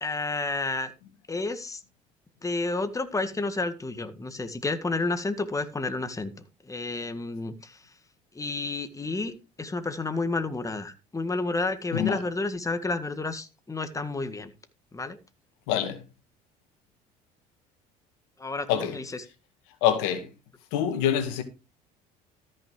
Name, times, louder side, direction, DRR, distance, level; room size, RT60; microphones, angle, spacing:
voice 1, 0.0-0.9 1.3-1.8 2.4-6.3 6.6-7.8 8.4-14.5 14.9-15.2 18.4-19.3, left 3 dB, 15° left, 1.7 m, -30 dB
voice 2, 15.7-16.0 18.7-19.0 19.8-20.3 20.7-21.4, left 10 dB, 75° left, 2.1 m, -25 dB
13.5 x 6.3 x 4.7 m
hypercardioid pair, 75°, 19 cm